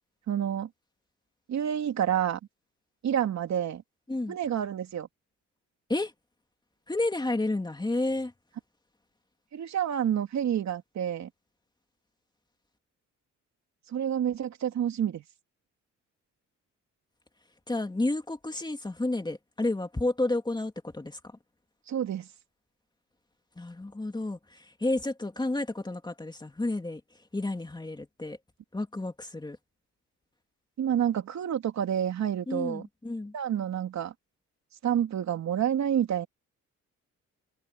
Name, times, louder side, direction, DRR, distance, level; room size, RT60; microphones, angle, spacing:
voice 1, 0.3-0.7 1.5-2.4 3.0-3.8 4.3-5.1 9.5-11.3 13.9-15.2 21.9-22.3 30.8-32.8 33.3-34.1 34.8-36.3, right 9 dB, 65° right, 3.0 m, -28 dB
voice 2, 6.9-8.3 17.7-21.2 23.6-27.0 27.3-28.4 28.7-29.6 32.5-33.3, left 2 dB, 15° left, 2.8 m, -31 dB
cardioid pair, 90°, 30 cm